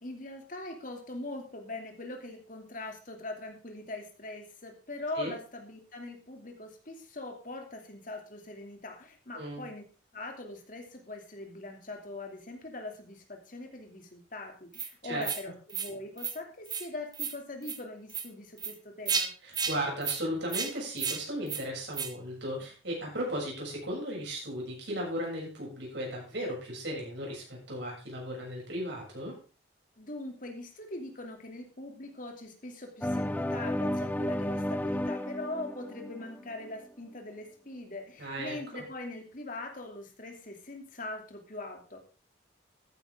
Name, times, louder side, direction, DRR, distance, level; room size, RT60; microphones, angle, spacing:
voice 1, 0.0-9.8 10.1-19.3 30.0-42.0, left 2 dB, 45° left, 3 dB, 2.7 m, -42 dB
sound 1, 14.7-14.9 15.2-15.4 15.7-15.9 16.2-16.3 16.7-16.9 17.1-17.3 17.6-17.8 18.1-18.3 18.6-18.7 19.1-19.3 19.5-19.7 20.0-20.2 20.5-20.7 21.0-21.2 21.5-21.6 21.9-22.1, right 6 dB, 20° right, 1.3 m, -32 dB
voice 2, 19.4-29.4 38.2-38.8, equal, 65° right, -2 dB, 7.3 m, -36 dB
sound 2, 33.0-36.8, left 1 dB, 10° left, 0.5 m, -32 dB
14.0 x 10.0 x 3.7 m, 0.35 s
head